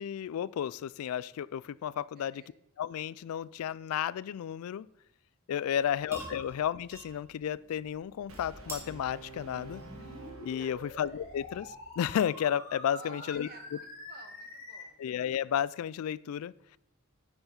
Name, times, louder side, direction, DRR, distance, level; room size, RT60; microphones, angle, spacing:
voice 1, 0.0-2.4 2.8-4.9 5.5-9.8 10.4-13.5 15.0-16.8, left 9 dB, 80° left, 18 dB, 0.3 m, -33 dB
voice 2, 2.2-2.5 10.6-10.9 12.9-15.0, right 3 dB, 45° right, 6 dB, 1.2 m, -53 dB
sound 1, 5.7-12.1, right 1 dB, 10° right, 1.8 m, -50 dB
Brass instrument, 8.3-11.4, right 2 dB, 75° right, 1.4 m, -48 dB
sound 2, 9.8-14.8, left 1 dB, 30° left, 4.0 m, -46 dB
9.7 x 7.0 x 3.8 m, 0.79 s
head